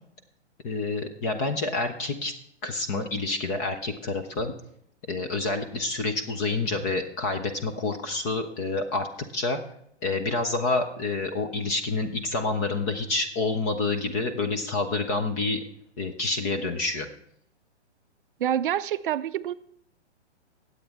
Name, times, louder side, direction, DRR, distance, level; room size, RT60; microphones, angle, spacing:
voice 1, 0.6-2.3 2.6-4.5 5.1-9.1 9.3-9.6 10.0-15.6 16.0-17.1, left 3 dB, 15° left, 6 dB, 0.4 m, -28 dB
voice 2, 18.4-19.5, right 10 dB, 50° right, 13 dB, 0.5 m, -27 dB
18.5 x 8.0 x 3.5 m, 0.70 s
hypercardioid pair, 130°, 35 cm